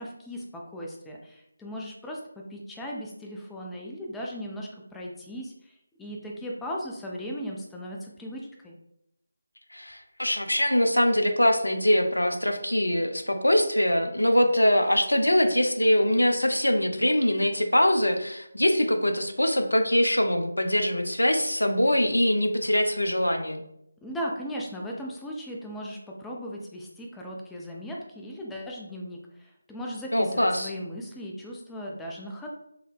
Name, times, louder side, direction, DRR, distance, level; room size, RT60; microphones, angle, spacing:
voice 1, 0.0-8.8 24.0-32.5, equal, 5° left, -2 dB, 0.3 m, -37 dB
voice 2, 9.7-23.6 30.1-30.7, left 1 dB, 80° left, 6 dB, 0.5 m, -23 dB
3.4 x 2.0 x 3.4 m, 0.78 s
figure-of-eight pair, 160°, 0 cm